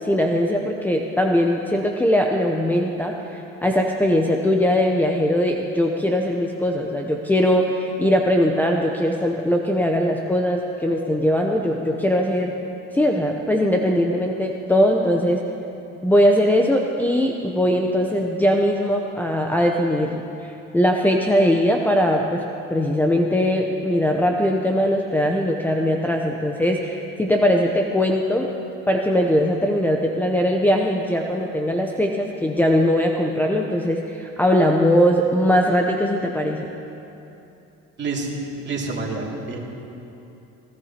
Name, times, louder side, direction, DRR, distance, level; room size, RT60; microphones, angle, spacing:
voice 1, 0.0-12.7 12.9-15.4 16.0-22.4 22.7-28.5 28.9-36.7, equal, 5° left, 1 dB, 0.7 m, -20 dB
voice 2, 38.0-38.3 38.6-39.6, right 3 dB, 35° right, -2 dB, 2.6 m, -28 dB
21.0 x 16.0 x 2.9 m, 2.9 s
cardioid pair, 105°, 31 cm